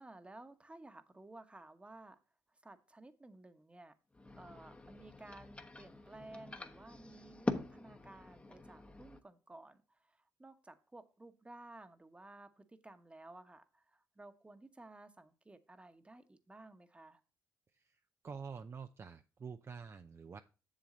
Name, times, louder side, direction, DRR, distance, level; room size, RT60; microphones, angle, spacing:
voice 1, 0.0-2.2 2.6-3.9 4.4-17.2, right 2 dB, 15° right, 10 dB, 1.2 m, -55 dB
sound 1, 4.1-9.2, left 2 dB, 15° left, 1.0 m, -44 dB
voice 2, 17.7-20.4, right 6 dB, 35° right, 8 dB, 0.5 m, -48 dB
7.4 x 6.9 x 3.8 m, 0.32 s
cardioid pair, 75°, 7 cm